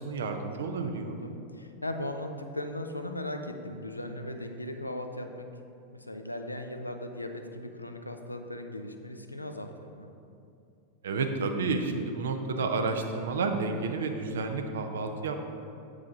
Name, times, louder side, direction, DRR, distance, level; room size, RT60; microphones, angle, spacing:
voice 1, 0.0-1.2 11.0-15.4, right 4 dB, 65° right, 5 dB, 0.6 m, -30 dB
voice 2, 0.8-5.5 5.9-10.1, left 1 dB, 85° left, 6 dB, 0.5 m, -38 dB
8.1 x 4.9 x 3.8 m, 2.5 s
figure-of-eight pair, 90°, 0 cm